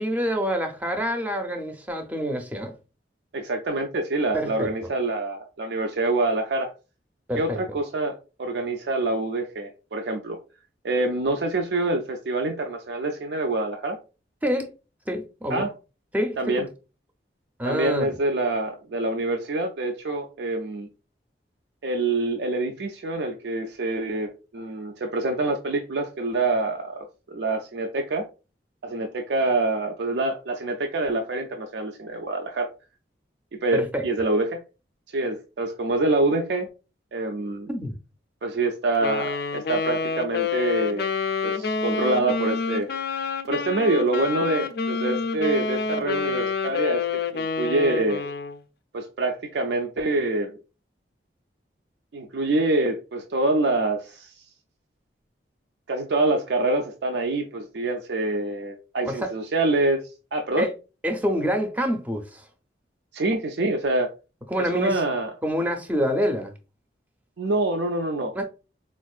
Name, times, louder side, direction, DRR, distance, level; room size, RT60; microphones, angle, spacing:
voice 1, 0.0-2.7 4.3-4.7 7.3-7.6 14.4-14.7 15.1-15.7 16.1-16.4 17.6-18.2 33.7-34.0 37.7-37.9 59.0-59.3 60.6-60.7 61.0-62.4 64.5-65.0 65.4-66.5 68.3-68.4, equal, 10° right, 0.5 m, -26 dB
voice 2, 3.3-6.7 7.4-10.4 10.8-14.0 15.5-15.7 16.4-16.7 17.6-20.9 21.8-28.2 28.8-32.7 33.5-34.6 35.1-36.7 37.1-37.7 38.4-41.0 41.4-42.9 43.5-47.0 47.3-48.3 48.9-50.6 52.1-54.3 55.9-60.0 60.3-60.7 63.1-64.1 64.6-65.3 67.4-68.3, right 2 dB, 70° right, 0.4 m, -26 dB
Wind instrument woodwind instrument, 39.0-48.6, left 5 dB, 60° left, 0.4 m, -28 dB
4.4 x 2.5 x 2.3 m
head